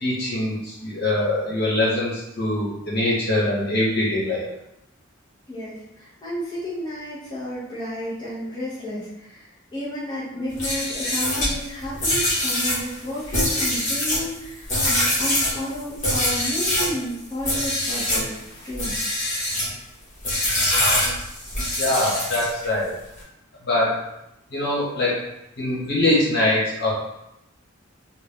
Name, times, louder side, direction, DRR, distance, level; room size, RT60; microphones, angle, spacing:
voice 1, 0.0-4.4 21.8-23.0 23.6-24.0 24.5-25.2 25.6-26.9, left 1 dB, 55° left, -6 dB, 1.5 m, -23 dB
voice 2, 5.5-18.3 18.6-19.2, equal, 20° left, -10 dB, 1.0 m, -32 dB
sound 1, 10.5-17.0 17.4-18.3 18.7-19.7 20.2-22.6, left 1 dB, 40° left, 1.5 m, -24 dB
3.6 x 2.4 x 3.6 m, 0.85 s
head